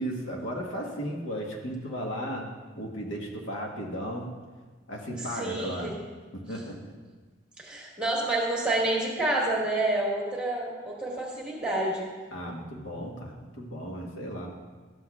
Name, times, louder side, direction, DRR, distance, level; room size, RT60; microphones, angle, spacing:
voice 1, 0.0-2.5 2.8-4.3 4.9-5.9 6.3-6.8 12.3-14.5, equal, 75° left, -1 dB, 1.2 m, -35 dB
voice 2, 5.1-6.0 7.6-12.1, right 2 dB, 5° right, -4 dB, 1.5 m, -28 dB
12.5 x 7.7 x 2.3 m, 1.4 s
head